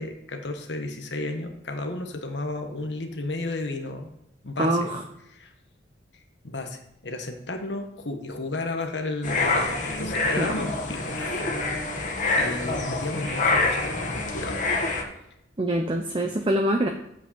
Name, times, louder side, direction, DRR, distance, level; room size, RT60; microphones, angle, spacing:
voice 1, 0.0-4.1 4.4-4.9 5.3-5.5 6.4-14.6 15.9-16.0, left 2 dB, 70° left, 5 dB, 1.3 m, -33 dB
voice 2, 4.6-5.0 10.4-10.6 15.6-16.9, right 1 dB, 30° right, 3 dB, 0.7 m, -24 dB
sound 1, 9.2-15.0, left 3 dB, 45° left, 1.4 m, -26 dB
8.0 x 5.5 x 7.0 m, 0.80 s
head